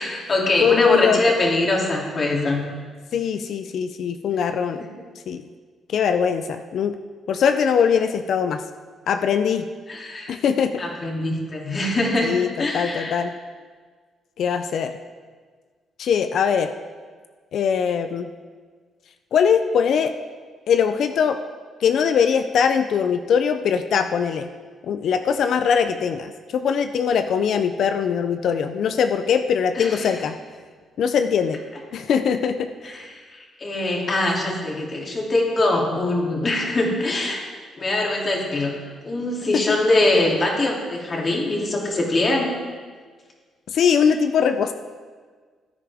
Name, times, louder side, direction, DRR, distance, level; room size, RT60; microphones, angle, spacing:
voice 1, 0.0-2.6 4.3-4.5 4.8-4.9 9.9-10.3 10.8-12.3 12.6-13.2 29.7-30.1 32.8-37.4 37.8-38.7 39.0-42.5, left 2 dB, 40° left, -1 dB, 2.8 m, -23 dB
voice 2, 0.6-1.2 3.1-4.9 5.3-5.4 5.9-7.0 7.3-8.6 9.1-9.7 10.3-10.8 12.2-13.3 14.4-14.9 16.0-16.7 17.5-18.3 19.3-20.1 20.7-21.4 21.8-24.5 24.8-30.4 31.0-31.6 31.9-32.9 39.5-39.8 43.7-44.7, left 7 dB, 65° left, 8 dB, 0.5 m, -21 dB
15.0 x 9.8 x 3.5 m, 1.5 s
cardioid pair, 90°, 0 cm